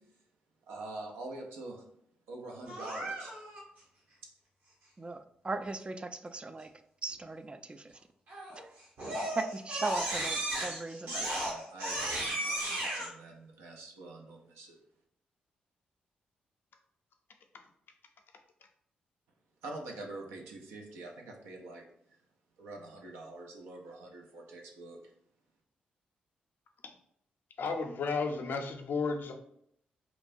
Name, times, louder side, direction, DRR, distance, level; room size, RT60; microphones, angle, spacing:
voice 1, 0.7-1.8 2.3-3.3 11.1-14.8 19.6-21.8 22.6-25.0, right 2 dB, 80° right, 1 dB, 0.5 m, -45 dB
Crying sobbing, 2.7-3.6 8.3-8.6 9.0-13.1, right 1 dB, 60° right, 1.1 m, -35 dB
voice 2, 5.0-6.7 7.0-8.0 8.5-8.7 9.4-11.3, right 3 dB, 25° right, 9 dB, 0.3 m, -38 dB
voice 3, 27.6-29.3, left 4 dB, 60° left, 5 dB, 0.4 m, -33 dB
2.9 x 2.2 x 2.6 m, 0.71 s
hypercardioid pair, 40°, 4 cm